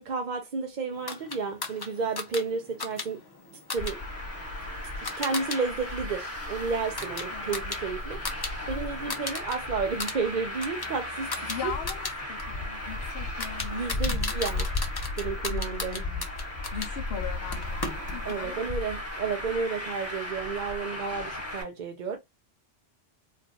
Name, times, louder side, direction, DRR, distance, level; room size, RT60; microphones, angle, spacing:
voice 1, 0.0-3.2 3.7-4.0 5.0-11.7 13.7-14.7 15.2-16.0 18.2-22.2, right 4 dB, 50° right, 0.6 m, -32 dB
sound 1, 1.1-5.6 5.9-8.5 8.8-9.6 9.9-16.9 17.5-18.4, left 3 dB, 30° left, 0.4 m, -37 dB
Traffic noise roadway noise, 3.8-21.6, left 2 dB, 10° left, 1.4 m, -35 dB
voice 2, 11.5-14.3 15.5-16.3 16.7-18.7 22.1-22.2, left 7 dB, 65° left, 0.7 m, -40 dB
3.7 x 2.5 x 2.7 m
omnidirectional pair, 1.2 m